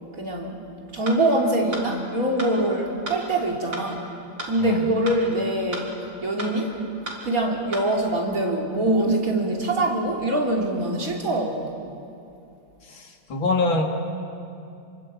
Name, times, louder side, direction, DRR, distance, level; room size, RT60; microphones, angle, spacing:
voice 1, 0.2-0.6 0.9-4.1 4.4-5.9 6.2-6.8 7.2-11.8, right 1 dB, 45° right, -1 dB, 3.6 m, -24 dB
sound 1, 1.1-1.2 1.7-1.9 2.4-2.5 3.1-3.2 3.7-3.9 4.4-4.5 5.1-5.2 5.7-5.9 6.4-6.5 7.1-7.2 7.7-7.9, right 1 dB, 70° right, 4.4 m, -33 dB
voice 2, 13.3-13.8, left 3 dB, 90° left, 2 dB, 3.1 m, -22 dB
28.0 x 23.5 x 8.7 m, 2.6 s
omnidirectional pair, 2.1 m